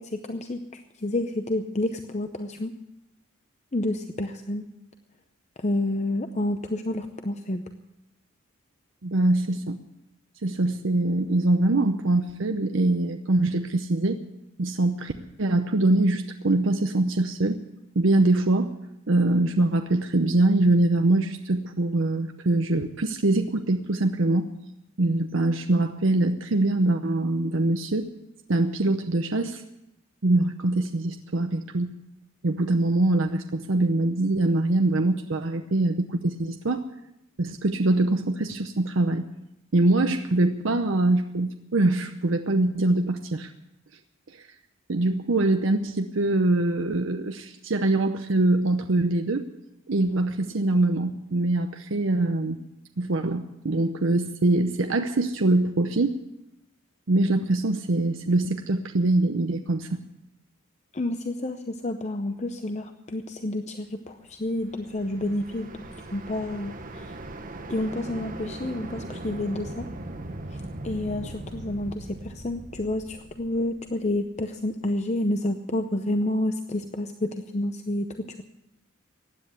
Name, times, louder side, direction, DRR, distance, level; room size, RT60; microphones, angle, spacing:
voice 1, 0.0-2.7 3.7-4.7 5.6-7.7 60.9-65.8 66.1-67.1 67.7-69.8 70.8-78.4, left 1 dB, 30° left, 7 dB, 0.7 m, -29 dB
voice 2, 9.0-9.8 10.4-14.2 14.6-15.1 15.4-17.6 18.0-18.7 19.1-24.5 25.0-28.1 28.5-29.6 30.2-31.9 32.4-36.8 37.4-39.3 39.7-43.5 44.4-44.5 44.9-49.4 49.9-52.6 53.0-56.2 57.1-60.0, right 2 dB, 65° right, 6 dB, 0.7 m, -23 dB
sound 1, 64.3-74.3, right 1 dB, 40° right, 1.1 m, -40 dB
15.5 x 9.8 x 8.1 m, 0.87 s
head